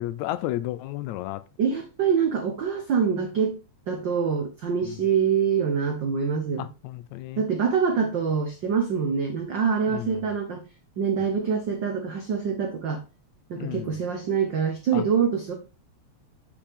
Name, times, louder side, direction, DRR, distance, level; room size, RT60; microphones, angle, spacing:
voice 1, 0.0-1.4 4.8-5.1 6.6-7.5 9.9-10.3 13.6-14.0 14.9-15.0, left 15 dB, 80° left, 1.8 m, -33 dB
voice 2, 1.6-3.6 3.9-6.7 7.4-10.6 11.0-13.0 13.5-15.5, right 6 dB, 75° right, 1.0 m, -25 dB
7.2 x 7.0 x 3.5 m
omnidirectional pair, 3.4 m